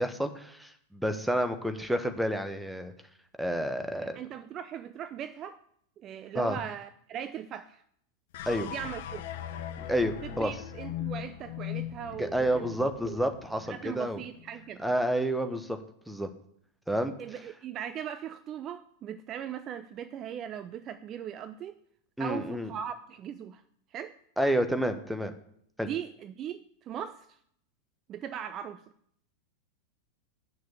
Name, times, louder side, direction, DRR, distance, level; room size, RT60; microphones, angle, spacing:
voice 1, 0.0-2.9 3.4-4.2 6.3-6.6 8.5-8.7 9.8-10.5 12.2-14.2 14.8-15.8 16.1-16.3 16.9-17.1 22.2-22.7 24.4-25.3 25.8-25.9, equal, ahead, 7 dB, 1.2 m, -29 dB
voice 2, 4.0-5.6 6.0-7.8 8.7-9.2 10.2-12.7 13.1-13.2 13.7-14.8 17.2-21.7 22.2-23.6 23.9-24.2 25.8-27.3 28.1-28.8, right 9 dB, 30° right, 11 dB, 0.5 m, -39 dB
sound 1, 8.3-14.7, left 11 dB, 55° left, 0.8 m, -40 dB
8.6 x 6.5 x 8.3 m, 0.68 s
figure-of-eight pair, 90°, 0 cm